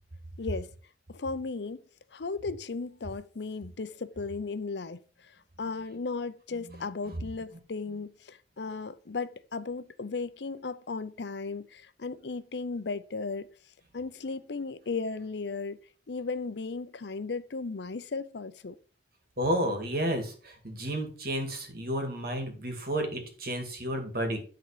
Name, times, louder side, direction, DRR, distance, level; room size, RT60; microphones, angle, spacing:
voice 1, 0.4-0.7 1.1-1.8 2.1-5.3 5.6-13.5 13.9-15.8 16.1-18.8, left 4 dB, 70° left, 0.6 m, -36 dB
voice 2, 19.4-24.4, equal, 55° right, 2.2 m, -31 dB
11.5 x 4.0 x 4.9 m
head